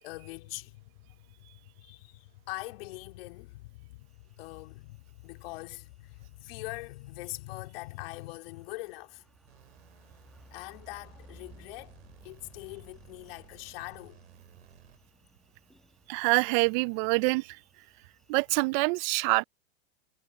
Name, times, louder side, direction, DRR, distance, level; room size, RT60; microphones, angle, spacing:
voice 1, 0.0-0.9 1.8-9.2 10.5-14.2, left 21 dB, 60° left, 3.5 m, -43 dB
sound 1, 4.1-18.7, equal, ahead, 1.6 m, -60 dB
sound 2, 9.5-15.2, right 11 dB, 80° right, 4.8 m, -58 dB
voice 2, 16.1-17.6 18.3-19.4, right 28 dB, 45° right, 0.6 m, -26 dB
hypercardioid pair, 120°, 33 cm